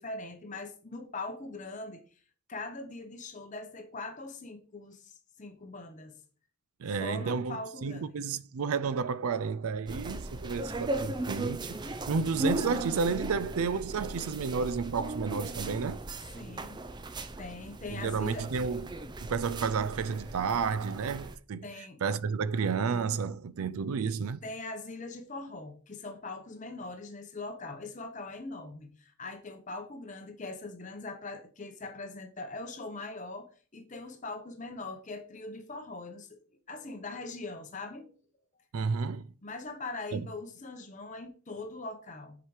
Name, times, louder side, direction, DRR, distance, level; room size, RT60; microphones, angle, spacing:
voice 1, 0.0-2.2 2.5-6.2 6.9-8.2 16.3-16.8 17.4-18.5 21.6-22.0 24.4-36.4 36.7-38.1 39.4-42.4, left 3 dB, 35° left, 0.8 m, -41 dB
voice 2, 6.8-16.0 17.9-18.9 19.3-21.7 22.0-24.4 38.7-39.3 40.1-40.3, right 5 dB, 80° right, 0.4 m, -31 dB
sound 1, 9.9-21.3, right 1 dB, 20° right, 0.5 m, -37 dB
7.3 x 4.9 x 4.8 m
head